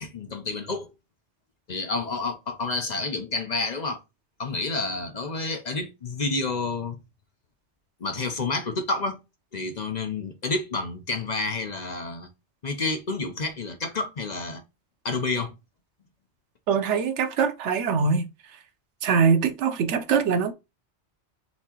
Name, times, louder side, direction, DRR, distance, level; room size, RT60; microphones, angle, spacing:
voice 1, 0.0-0.9 1.7-4.0 4.4-7.0 8.0-9.2 9.5-12.3 12.6-14.6 15.0-15.5, left 3 dB, 45° left, 0.8 m, -29 dB
voice 2, 16.7-18.2 19.0-20.5, right 6 dB, 90° right, 1.0 m, -23 dB
4.2 x 3.6 x 2.8 m
omnidirectional pair, 1.2 m